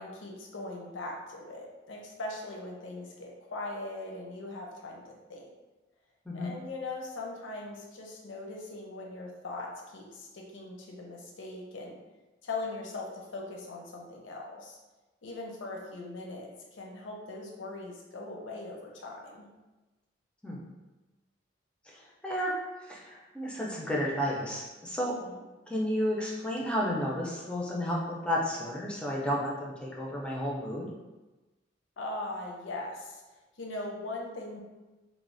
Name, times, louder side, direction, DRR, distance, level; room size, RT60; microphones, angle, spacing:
voice 1, 0.0-5.5 6.3-12.0 12.4-14.8 15.2-19.5 25.0-25.4 32.0-33.2 33.6-34.6, left 2 dB, 85° left, 0 dB, 0.5 m, -40 dB
voice 2, 21.9-22.5 22.8-25.2 25.7-30.9, equal, 5° left, -4 dB, 0.4 m, -32 dB
3.0 x 2.0 x 2.5 m, 1.1 s
head